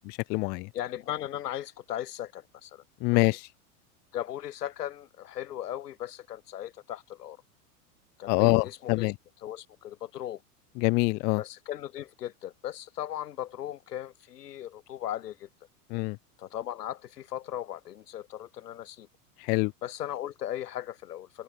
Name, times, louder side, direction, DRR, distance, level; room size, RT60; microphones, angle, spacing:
voice 1, 0.1-0.7 3.0-3.4 8.3-9.1 10.8-11.4 15.9-16.2 19.5-19.7, left 27 dB, 25° left, 0.3 m, -25 dB
voice 2, 0.7-2.8 3.1-3.4 4.1-7.4 8.2-9.1 9.4-10.4 11.4-15.5 16.4-19.1 19.8-21.4, left 12 dB, 85° left, 6.2 m, -37 dB
hypercardioid pair, 125°, 46 cm